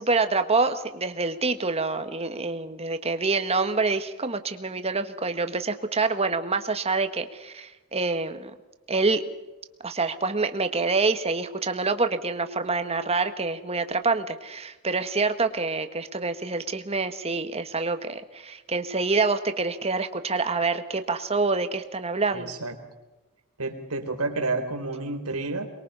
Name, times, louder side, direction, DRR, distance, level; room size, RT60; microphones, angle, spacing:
voice 1, 0.0-8.5 8.9-9.2 9.8-22.5, right 3 dB, 25° right, 8 dB, 1.6 m, -26 dB
voice 2, 22.3-22.7 23.6-25.7, right 3 dB, 90° right, 4 dB, 3.7 m, -30 dB
23.5 x 22.5 x 5.6 m, 1.1 s
head